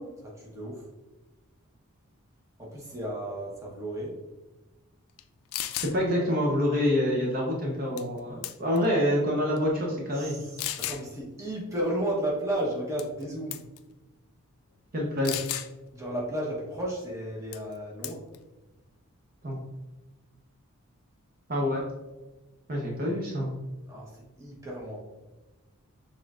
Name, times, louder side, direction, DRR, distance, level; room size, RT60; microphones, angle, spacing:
voice 1, 0.3-0.9 2.6-4.2 6.1-6.2 10.1-13.6 15.9-18.2 23.9-25.0, right 1 dB, 15° right, -3 dB, 0.9 m, -33 dB
sound 1, 5.2-5.3 5.5-5.9 8.0-8.2 8.4-8.9 9.6-9.7 10.6-11.0 13.0-13.2 13.5-13.8 15.2-15.7 17.5-17.7 18.0-18.4, left 12 dB, 70° left, 0.3 m, -33 dB
voice 2, 5.9-10.4 14.9-15.4 19.4-19.6 21.5-21.8 22.7-23.5, left 1 dB, 40° right, -2 dB, 0.7 m, -26 dB
5.9 x 3.7 x 2.4 m, 1.1 s
head